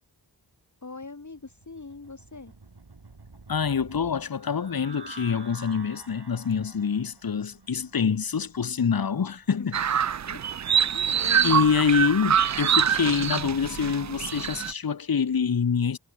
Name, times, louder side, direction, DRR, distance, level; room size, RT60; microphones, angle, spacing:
voice 1, 0.8-2.5 9.6-9.7 10.3-10.4 10.9-11.7, left 3 dB, 45° left, 1.8 m, -41 dB
sound 1, 1.2-13.1, right 3 dB, 75° right, 5.7 m, -50 dB
voice 2, 3.5-9.8 11.4-16.0, left 6 dB, 60° left, 0.9 m, -26 dB
sound 2, 9.7-14.7, right 8 dB, 45° right, 0.4 m, -25 dB
wide cardioid pair, 55°, 40 cm